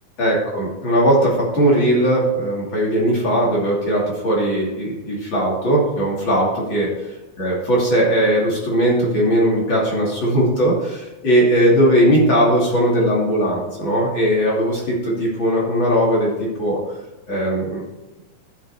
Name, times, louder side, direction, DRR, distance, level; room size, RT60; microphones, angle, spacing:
voice 1, 0.2-6.9 7.4-16.8 17.3-17.8, right 1 dB, 40° left, -4 dB, 3.3 m, -18 dB
12.0 x 6.4 x 4.3 m, 1.0 s
omnidirectional pair, 3.4 m